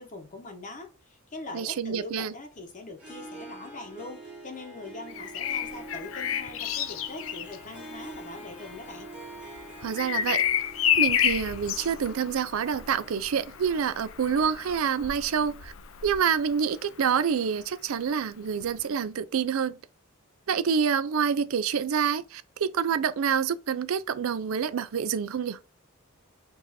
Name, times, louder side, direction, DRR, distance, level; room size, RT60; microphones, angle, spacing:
voice 1, 0.0-9.1, left 2 dB, 35° left, 0.9 m, -42 dB
voice 2, 1.5-2.3 9.8-10.4 11.0-15.7 16.0-19.8 20.5-25.6, right 7 dB, 75° right, 0.4 m, -27 dB
Harp, 3.0-14.8, right 2 dB, 5° right, 1.2 m, -46 dB
Bird vocalization bird call bird song, 5.1-16.9 18.6-18.8, left 10 dB, 65° left, 0.5 m, -31 dB
4.7 x 2.6 x 4.1 m
head